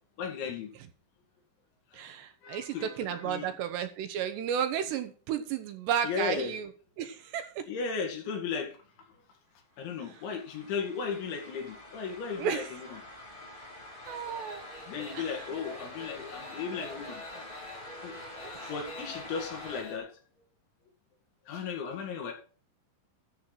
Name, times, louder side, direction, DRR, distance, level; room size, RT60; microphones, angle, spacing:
voice 1, 0.2-0.7 2.4-3.5 6.0-6.5 7.7-8.7 9.8-13.0 14.9-17.5 18.0-18.2 18.7-20.1 21.5-22.3, left 5 dB, 80° left, 2 dB, 4.6 m, -35 dB
voice 2, 1.9-6.7 7.0-7.7 12.4-12.7 14.1-14.6 15.1-15.3 18.5-18.7, right 8 dB, 75° right, 8 dB, 2.9 m, -33 dB
Future Transition, 9.8-19.8, left 1 dB, 15° left, 1.6 m, -46 dB
sound 1, 14.0-20.0, left 2 dB, 35° left, 3.4 m, -47 dB
13.0 x 4.5 x 6.2 m, 0.39 s
omnidirectional pair, 5.3 m